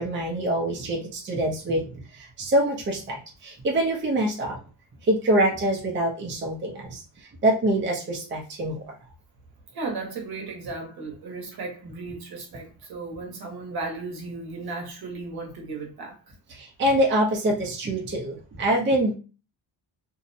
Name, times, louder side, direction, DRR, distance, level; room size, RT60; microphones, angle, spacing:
voice 1, 0.0-4.6 5.1-7.0 7.4-8.8 16.5-19.1, right 1 dB, 25° right, 0.5 m, -25 dB
voice 2, 9.7-16.3, right 3 dB, 60° right, 0.9 m, -35 dB
2.6 x 2.0 x 2.6 m
wide cardioid pair, 150°, 43 cm